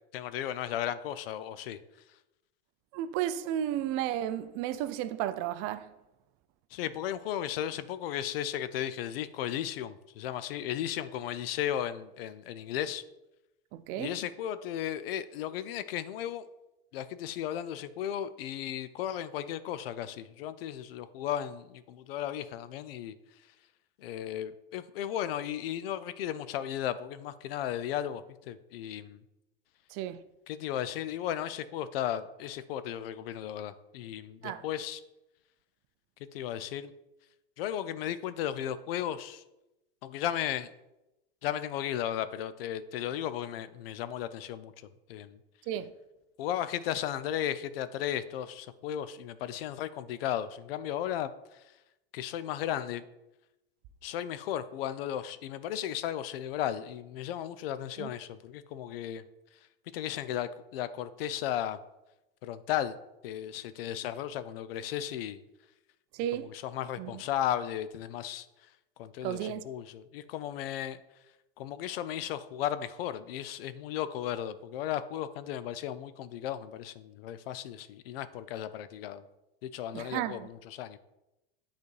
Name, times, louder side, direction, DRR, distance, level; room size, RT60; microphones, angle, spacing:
voice 1, 0.1-1.8 6.7-13.0 14.0-16.5 16.9-23.1 24.0-29.2 30.5-35.0 36.3-36.9 37.6-39.4 40.0-40.7 41.4-44.7 45.1-45.4 46.4-51.6 52.1-53.0 54.0-59.2 59.9-61.8 62.4-63.0 63.2-65.4 66.3-68.5 69.0-71.0 71.6-79.2 79.6-81.0, left 11 dB, 80° left, 0.5 m, -35 dB
voice 2, 2.9-5.9 13.7-14.1 29.9-30.2 34.4-34.6 45.7-45.9 58.0-58.1 66.1-66.5 67.0-67.2 69.2-69.6 79.9-80.5, right 11 dB, 50° right, 0.5 m, -33 dB
8.4 x 4.1 x 3.2 m
supercardioid pair, 120°, 29 cm